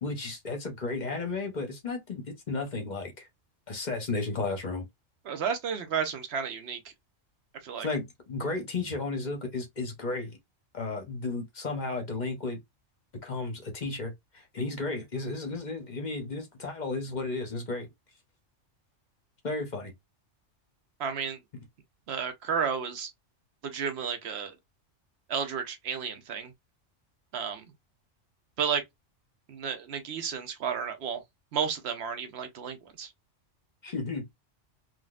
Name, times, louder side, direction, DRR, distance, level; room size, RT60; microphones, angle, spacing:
voice 1, 0.0-3.3 3.7-4.8 7.8-10.4 10.7-12.6 13.2-17.9 19.4-19.9 33.8-34.3, left 3 dB, 45° left, 0.8 m, -33 dB
voice 2, 5.3-6.8 7.6-7.9 21.0-21.4 22.1-23.1 23.6-24.6 25.3-26.5 27.3-27.6 28.6-28.8 29.5-31.2 31.5-33.1, right 7 dB, 60° right, 0.9 m, -32 dB
3.7 x 2.4 x 2.3 m
omnidirectional pair, 1.3 m